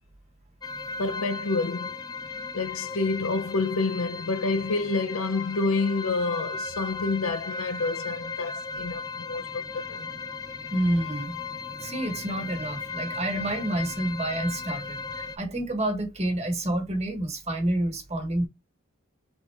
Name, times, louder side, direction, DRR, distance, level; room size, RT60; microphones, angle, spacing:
sound 1, 0.6-15.4, left 4 dB, 20° left, 0.6 m, -36 dB
voice 1, 1.0-2.0 2.5-10.1, left 3 dB, 85° left, 0.6 m, -28 dB
voice 2, 10.7-11.5 11.8-18.5, right 1 dB, 35° right, 1.3 m, -28 dB
4.0 x 3.6 x 3.3 m
head